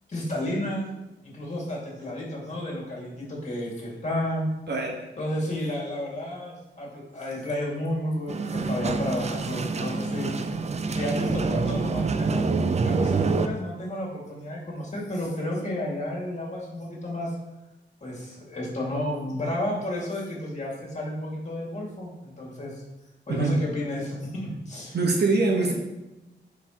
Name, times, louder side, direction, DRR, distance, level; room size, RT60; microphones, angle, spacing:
voice 1, 0.1-0.9 1.2-4.5 5.2-10.3 10.9-12.4 12.8-17.3 18.0-22.8 23.3-25.0, left 1 dB, 35° left, -3 dB, 2.2 m, -32 dB
sound 1, 8.3-13.5, right 4 dB, 35° right, 0.4 m, -26 dB
voice 2, 24.9-25.7, right 3 dB, 60° right, 1 dB, 1.3 m, -23 dB
10.0 x 4.5 x 3.0 m, 1.0 s
wide cardioid pair, 120°, 20 cm